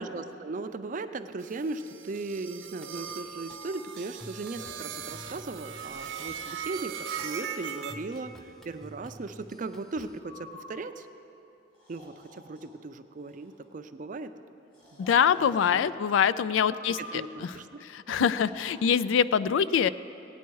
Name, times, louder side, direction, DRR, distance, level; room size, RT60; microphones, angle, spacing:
voice 1, 0.0-11.1 11.9-14.3 14.9-15.0 15.4-15.9 16.9-18.3, right 3 dB, 40° right, 10 dB, 0.4 m, -38 dB
sound 1, 1.4-7.9, right 7 dB, 80° right, 1.0 m, -39 dB
sound 2, 2.8-10.2, right 1 dB, ahead, 0.6 m, -51 dB
Breathing, 10.2-10.7 11.7-12.7 13.2-13.6 14.7-15.7 16.6-17.4 18.1-18.8, equal, 45° left, 3.1 m, -48 dB
voice 2, 15.0-17.5 17.8-19.9, left 7 dB, 75° left, 16 dB, 0.3 m, -24 dB
16.5 x 9.3 x 4.7 m, 2.8 s
head